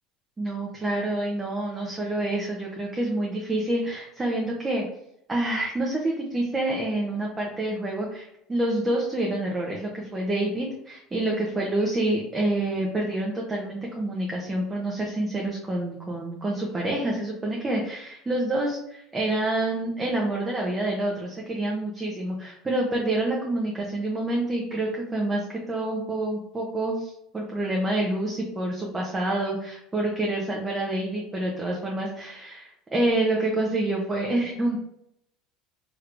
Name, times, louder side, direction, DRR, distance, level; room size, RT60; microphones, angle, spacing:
voice 1, 0.4-4.8 5.3-34.8, right 1 dB, 20° right, -2 dB, 0.7 m, -27 dB
3.2 x 3.2 x 2.5 m, 0.78 s
supercardioid pair, 100°, 0 cm